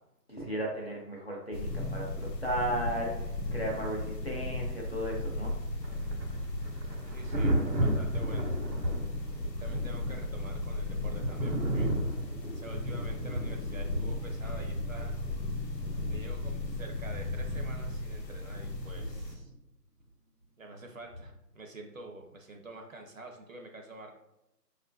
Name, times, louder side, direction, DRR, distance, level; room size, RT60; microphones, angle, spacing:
voice 1, 0.3-3.1 3.5-5.6, right 1 dB, 40° left, -3 dB, 0.6 m, -35 dB
sound 1, 1.5-19.3, left 2 dB, 85° left, 0.8 m, -36 dB
Thunder, 5.8-19.5 21.1-21.3, right 1 dB, 85° right, 0.9 m, -35 dB
voice 2, 7.1-8.5 9.6-12.2 12.5-15.2 16.1-19.5 20.6-24.1, right 2 dB, 55° right, 2 dB, 0.5 m, -47 dB
4.6 x 2.4 x 2.2 m, 0.88 s
figure-of-eight pair, 165°, 49 cm